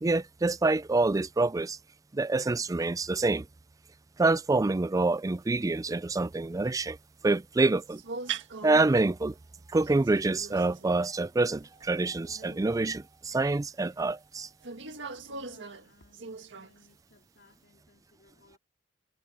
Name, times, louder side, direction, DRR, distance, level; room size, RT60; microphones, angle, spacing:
voice 1, 0.0-1.8 2.1-3.5 4.2-7.0 7.2-8.0 8.6-9.4 9.7-14.5, right 3 dB, 20° right, 0.4 m, -26 dB
sound 1, 7.9-9.0 9.8-11.1 11.6-12.0 12.2-12.7 13.3-13.4 14.6-16.9, right 5 dB, 65° right, 1.8 m, -41 dB
voice 2, 15.3-18.6, left 2 dB, 60° left, 3.7 m, -61 dB
head